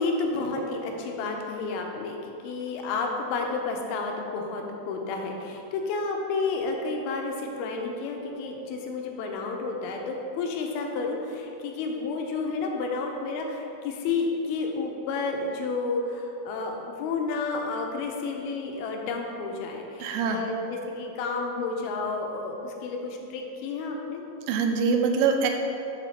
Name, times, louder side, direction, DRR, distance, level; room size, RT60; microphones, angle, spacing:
voice 1, 0.0-24.2, left 3 dB, 85° left, 2 dB, 2.6 m, -31 dB
voice 2, 20.0-20.4 24.5-25.5, right 5 dB, 80° right, 3 dB, 2.0 m, -24 dB
6.9 x 4.1 x 5.8 m, 2.8 s
omnidirectional pair, 4.4 m